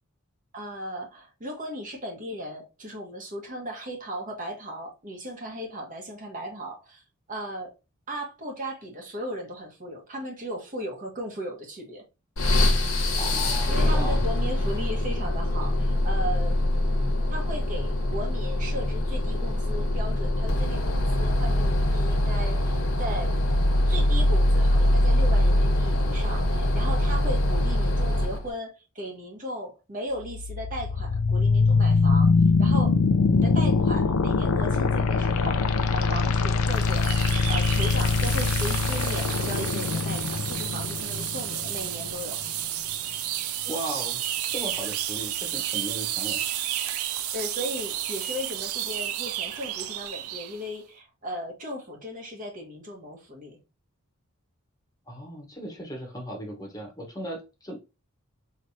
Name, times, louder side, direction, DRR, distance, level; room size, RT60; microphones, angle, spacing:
voice 1, 0.5-7.0 7.3-7.7 8.1-12.0 13.7-16.6 17.3-23.4 23.9-32.3 32.6-33.0 33.3-42.4 47.3-53.6, equal, 40° right, 1.2 m, -36 dB
sound 1, 12.4-28.5, left 1 dB, 65° left, 1.1 m, -23 dB
voice 2, 13.2-14.2 43.6-44.2 44.5-46.4 55.1-57.8, right 1 dB, 15° left, 1.0 m, -36 dB
sound 2, 30.2-42.2, left 4 dB, 85° left, 0.5 m, -23 dB
sound 3, 36.7-50.6, right 12 dB, 85° right, 0.5 m, -32 dB
4.3 x 3.2 x 2.7 m
head